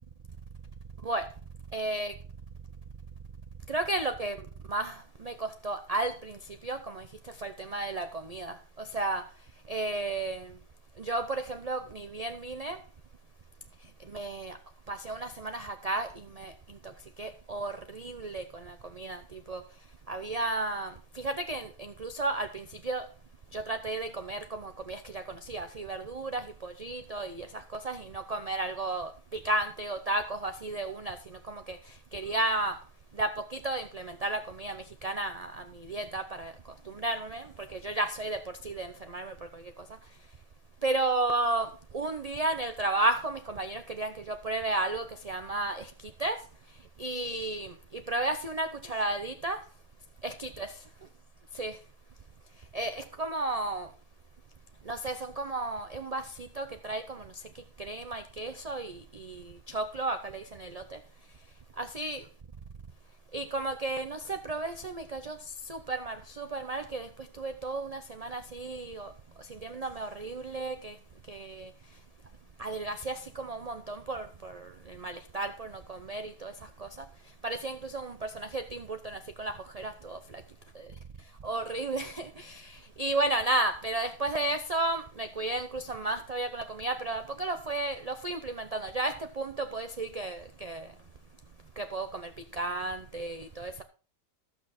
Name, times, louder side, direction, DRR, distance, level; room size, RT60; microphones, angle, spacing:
voice 1, 1.7-2.1 3.7-4.4 4.7-7.1 7.4-9.2 9.7-10.5 11.0-12.8 14.1-14.6 14.9-16.9 17.2-19.6 20.1-23.1 23.5-31.8 32.1-32.8 33.1-36.5 36.9-39.6 40.8-45.9 46.2-46.4 47.0-49.6 50.2-50.7 51.5-51.8 52.7-53.9 54.9-57.3 57.8-61.0 61.8-62.2 63.3-65.4 65.7-67.1 67.4-69.1 69.5-70.9 71.3-71.7 72.6-76.5 76.8-76.9 77.4-80.2 81.4-90.9 91.8-93.7, right 2 dB, 50° right, 0.4 m, -33 dB
12.5 x 8.2 x 4.2 m
omnidirectional pair, 1.8 m